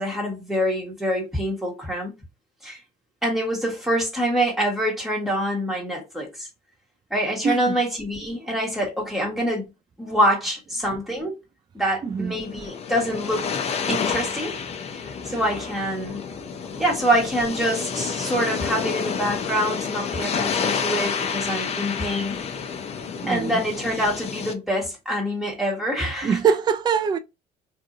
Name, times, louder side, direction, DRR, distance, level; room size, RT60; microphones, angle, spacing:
voice 1, 0.0-2.1 2.6-2.8 3.2-6.5 7.1-9.7 10.0-11.3 11.7-13.5 13.9-14.5 14.9-16.2 16.8-22.4 23.3-26.4, equal, ahead, 1.3 m, -25 dB
voice 2, 7.4-7.7 12.0-12.3 16.0-16.2 16.7-16.8 23.2-23.6 26.2-27.2, right 6 dB, 25° right, 0.3 m, -23 dB
sound 1, 12.3-24.5, left 6 dB, 40° left, 0.5 m, -29 dB
2.7 x 2.5 x 2.4 m
cardioid pair, 110°, 17 cm